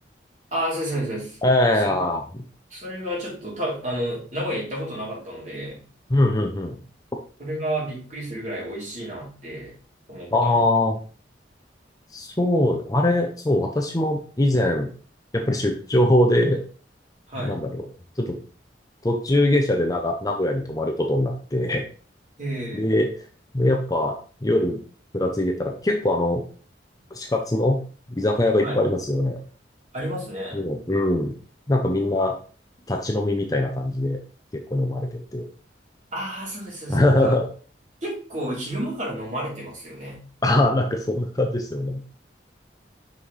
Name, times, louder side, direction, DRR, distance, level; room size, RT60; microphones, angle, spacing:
voice 1, 0.5-1.4 1.8-2.1 2.7-5.8 7.4-9.7 10.1-10.6 17.3-17.6 22.4-22.9 28.6-28.8 29.9-30.7 36.1-37.4 38.0-40.2, right 1 dB, 40° right, -5 dB, 3.4 m, -31 dB
voice 2, 1.4-2.4 6.1-6.8 10.3-11.0 12.1-14.9 15.3-16.6 17.4-17.8 18.2-18.3 19.0-21.8 22.8-23.1 23.5-24.8 25.1-26.4 27.1-27.8 28.1-29.4 30.5-31.3 31.7-32.3 32.9-34.2 34.7-35.4 36.9-37.5 40.4-42.0, left 1 dB, 20° left, 3 dB, 0.7 m, -22 dB
6.3 x 5.5 x 3.2 m, 0.39 s
head